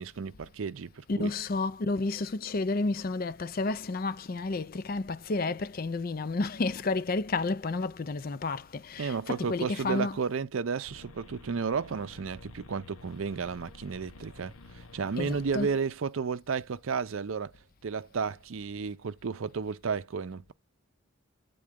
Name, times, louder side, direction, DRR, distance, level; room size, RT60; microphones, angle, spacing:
voice 1, 0.0-1.3 9.0-17.5 17.8-20.5, right 5 dB, 70° right, 0.5 m, -33 dB
voice 2, 1.1-10.2 15.2-15.7, left 3 dB, 40° left, 0.4 m, -31 dB
sound 1, 10.8-16.0, left 2 dB, 80° left, 0.9 m, -50 dB
8.6 x 3.8 x 3.6 m
head